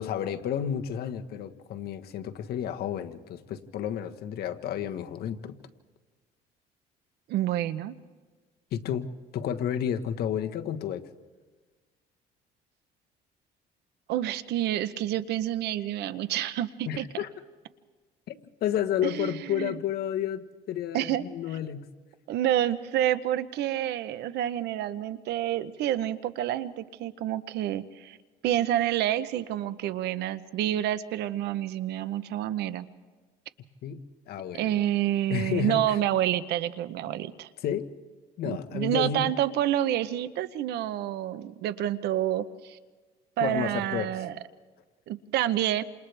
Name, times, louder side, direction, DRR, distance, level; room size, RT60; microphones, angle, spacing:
voice 1, 0.0-5.6 8.7-9.1 9.3-11.0 16.9-17.3 18.3-21.9 33.8-34.0 34.3-34.8 35.3-36.0 37.6-37.9 38.4-39.3 43.4-44.2, left 9 dB, 70° left, 7 dB, 1.3 m, -31 dB
voice 2, 7.3-7.9 14.1-17.1 19.0-19.8 20.9-21.2 22.3-28.2 28.4-32.9 34.5-37.5 38.4-42.8 43.4-44.3 45.1-45.8, right 12 dB, 80° right, 14 dB, 0.9 m, -28 dB
28.5 x 27.5 x 3.4 m, 1.4 s
cardioid pair, 110°, 17 cm